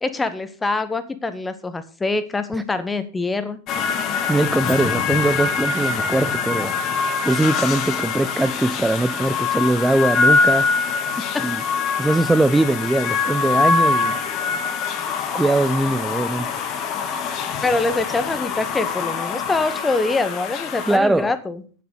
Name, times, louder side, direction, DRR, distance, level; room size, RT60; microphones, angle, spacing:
voice 1, 0.0-3.6 11.3-11.5 17.6-21.6, left 3 dB, 10° left, 1.2 m, -24 dB
sound 1, 3.7-21.0, left 5 dB, 35° left, 1.6 m, -24 dB
voice 2, 4.2-6.7 7.2-10.7 11.4-11.6 12.0-14.2 15.3-16.5 20.9-21.3, right 2 dB, 5° right, 0.4 m, -21 dB
9.3 x 7.4 x 6.6 m
figure-of-eight pair, 90°, 0 cm